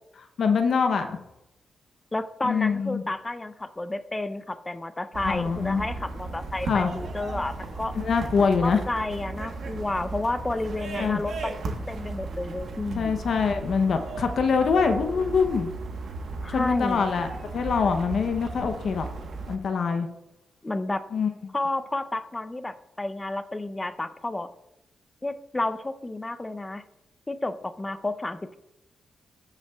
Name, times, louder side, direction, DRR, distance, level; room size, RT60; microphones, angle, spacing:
voice 1, 0.4-1.2 2.4-3.0 5.2-5.8 6.7-6.9 7.9-8.8 11.0-11.2 12.9-15.7 16.5-19.1 19.5-20.1 21.1-21.3, left 5 dB, 65° left, 6 dB, 0.6 m, -24 dB
voice 2, 2.1-7.9 8.6-13.1 16.4-17.1 20.6-21.0 21.5-24.5 25.2-26.8 27.3-28.6, left 2 dB, 20° left, 11 dB, 0.5 m, -31 dB
sound 1, 5.1-19.6, right 3 dB, 70° right, 1.1 m, -36 dB
13.5 x 5.8 x 2.3 m, 0.90 s
cardioid pair, 75°, 0 cm